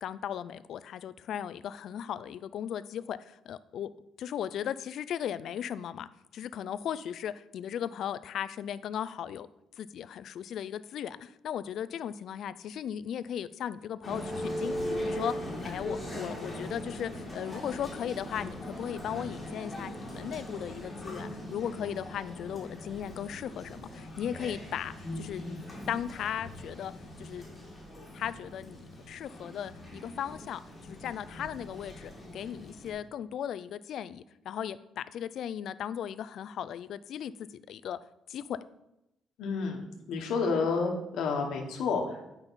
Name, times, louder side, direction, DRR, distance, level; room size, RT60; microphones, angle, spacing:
voice 1, 0.0-3.2 3.5-3.9 4.2-9.5 9.8-15.4 15.6-25.4 25.9-26.9 27.2-27.4 28.1-37.3 37.7-38.0 38.3-38.6, left 9 dB, 55° left, 15 dB, 0.3 m, -37 dB
Male speech man speaking, 14.0-32.9, left 1 dB, 10° left, 2.0 m, -40 dB
voice 2, 39.4-39.8 40.1-42.2, left 4 dB, 75° left, 2 dB, 1.2 m, -30 dB
9.0 x 5.3 x 4.0 m, 0.87 s
cardioid pair, 170°, 0 cm